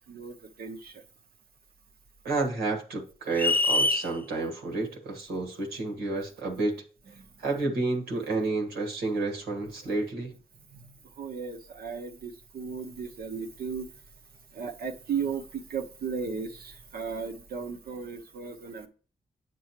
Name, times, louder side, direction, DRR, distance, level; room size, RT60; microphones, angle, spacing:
voice 1, 0.1-1.0 6.1-6.3 7.2-7.3 10.7-13.9 14.5-18.9, right 6 dB, 70° right, 1.0 m, -36 dB
voice 2, 2.2-6.8 7.4-10.3, right 3 dB, 90° right, 1.6 m, -30 dB
sound 1, 3.4-4.1, left 2 dB, 10° left, 0.4 m, -24 dB
8.5 x 6.2 x 3.0 m
supercardioid pair, 40°, 16 cm